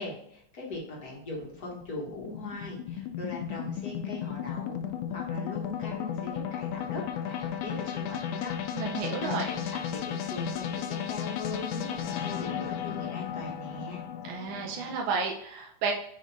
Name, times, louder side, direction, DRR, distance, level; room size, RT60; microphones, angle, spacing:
voice 1, 0.0-8.5 8.9-14.0, left 2 dB, 55° left, -2 dB, 1.0 m, -40 dB
sound 1, 0.7-15.0, left 9 dB, 90° left, 2.0 m, -35 dB
voice 2, 8.7-9.5 14.2-15.9, right 5 dB, 85° right, 0 dB, 2.1 m, -32 dB
6.3 x 3.8 x 4.0 m, 0.71 s
omnidirectional pair, 3.3 m